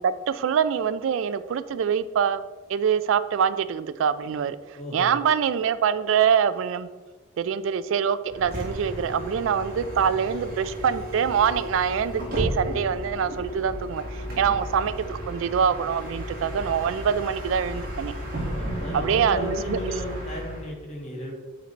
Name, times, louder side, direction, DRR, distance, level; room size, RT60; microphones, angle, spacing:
voice 1, 0.0-2.4 2.7-4.6 4.9-6.9 7.4-14.0 14.4-18.1 18.9-19.8, right 7 dB, 85° right, 14 dB, 0.3 m, -24 dB
voice 2, 4.8-5.1 14.3-14.6 18.4-21.3, equal, 35° left, -2 dB, 1.6 m, -34 dB
Bus, 8.3-20.7, equal, 50° right, 1.9 m, -33 dB
8.1 x 3.9 x 4.4 m, 1.3 s
head